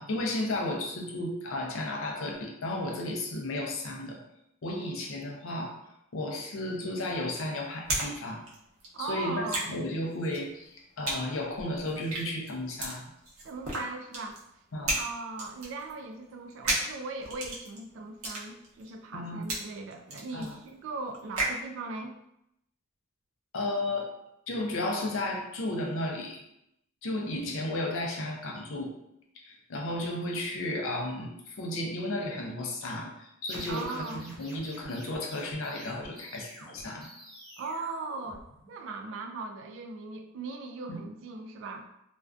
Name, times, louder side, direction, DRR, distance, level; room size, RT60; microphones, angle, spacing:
voice 1, 0.0-4.2 4.6-5.8 6.1-8.5 9.0-13.1 14.7-15.0 19.1-19.5 20.3-20.5 23.5-24.1 24.5-26.4 27.0-28.9 29.4-37.1 40.9-41.0, left 1 dB, 70° left, 1 dB, 0.5 m, -33 dB
sound 1, 6.7-8.1 8.4-21.6, right 2 dB, 85° right, 0.7 m, -35 dB
voice 2, 8.9-9.8 13.4-14.4 14.9-22.2 33.7-34.3 37.6-41.9, right 3 dB, 65° right, 4 dB, 0.3 m, -39 dB
sound 2, 33.5-38.9, equal, ahead, 0.9 m, -48 dB
2.5 x 2.2 x 2.3 m, 0.80 s
head